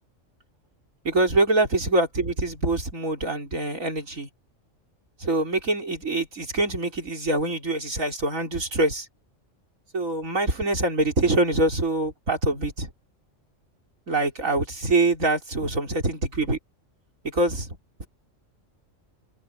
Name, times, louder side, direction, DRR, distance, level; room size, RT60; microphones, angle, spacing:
voice 1, 1.0-4.3 5.2-9.1 9.9-12.9 14.1-16.6 17.2-18.1, right 2 dB, 90° right, 4.9 m, -24 dB
omnidirectional pair, 1.4 m